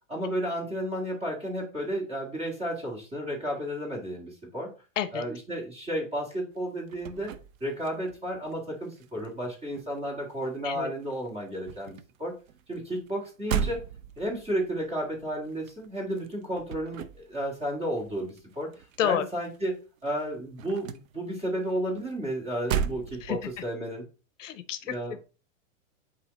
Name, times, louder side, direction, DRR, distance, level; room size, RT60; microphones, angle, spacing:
voice 1, 0.1-4.7 5.1-7.3 7.6-12.3 12.7-13.8 14.2-18.7 19.0-19.8 20.0-24.0 24.8-25.2, right 1 dB, 15° right, -2 dB, 2.1 m, -32 dB
sound 1, 6.6-8.6 8.8-10.8 11.0-19.7 20.0-23.7, right 8 dB, 80° right, 0.7 m, -37 dB
voice 2, 24.4-24.8 25.1-25.2, left 10 dB, 65° left, 12 dB, 0.7 m, -29 dB
8.1 x 2.9 x 4.0 m, 0.33 s
supercardioid pair, 160°, 40 cm